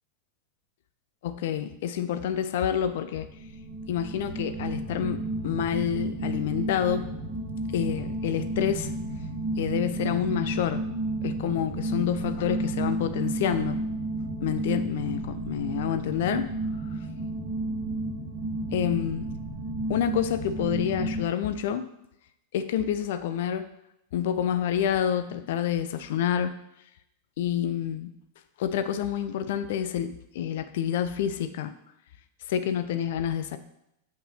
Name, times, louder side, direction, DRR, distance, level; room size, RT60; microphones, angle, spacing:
voice 1, 1.2-3.3 3.9-7.1 7.7-8.9 9.6-10.8 11.2-13.8 14.4-16.5 18.7-19.3 19.9-21.9 22.5-23.7 24.1-26.5 27.4-28.1 28.6-31.7 32.5-33.6, left 9 dB, 55° left, 11 dB, 0.6 m, -28 dB
sound 1, 3.0-21.2, right 2 dB, 45° right, 1.5 m, -32 dB
6.0 x 5.6 x 5.7 m, 0.82 s
figure-of-eight pair, 90°, 0 cm